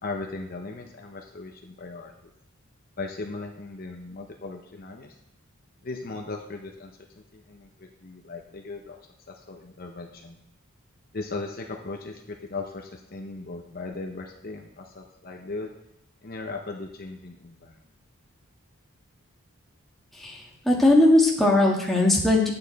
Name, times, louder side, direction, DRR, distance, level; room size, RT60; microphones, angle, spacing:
voice 1, 0.0-2.1 3.0-5.1 5.8-6.9 7.3-9.0 9.3-10.4 11.1-15.7 16.2-17.8, left 3 dB, 40° left, 2 dB, 0.8 m, -37 dB
voice 2, 20.1-22.5, left 1 dB, ahead, -3 dB, 1.5 m, -19 dB
9.6 x 8.8 x 4.1 m, 0.80 s
head